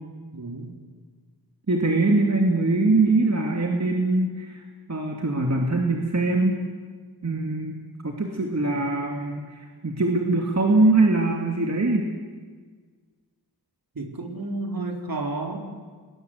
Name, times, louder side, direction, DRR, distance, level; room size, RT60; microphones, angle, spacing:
voice 1, 0.3-0.7 14.0-15.6, right 2 dB, 60° right, 2 dB, 4.2 m, -31 dB
voice 2, 1.7-4.6 4.9-6.5 7.2-7.8 8.0-12.1, right 2 dB, 45° right, 1 dB, 2.6 m, -22 dB
29.0 x 20.5 x 8.1 m, 1.5 s
wide cardioid pair, 75°, 39 cm